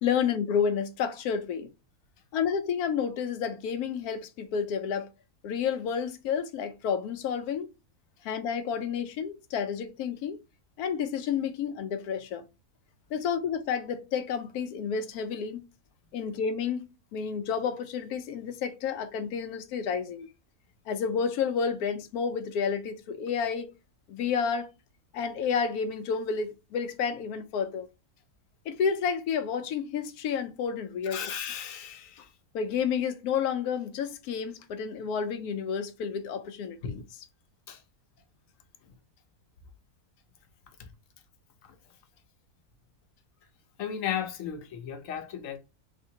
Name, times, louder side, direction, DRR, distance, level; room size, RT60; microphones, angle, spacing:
voice 1, 0.0-1.7 2.3-5.1 5.4-7.7 8.2-10.4 10.8-12.4 13.1-15.6 16.1-20.3 20.9-23.7 24.1-24.7 25.1-27.9 28.7-31.2 32.5-37.0, left 6 dB, 90° left, 1.1 m, -30 dB
voice 2, 31.0-32.2 36.8-36.9 37.7-37.8 40.8-40.9 41.6-41.7 43.8-45.6, left 8 dB, 70° left, 1.0 m, -35 dB
3.3 x 2.8 x 2.7 m
omnidirectional pair, 1.5 m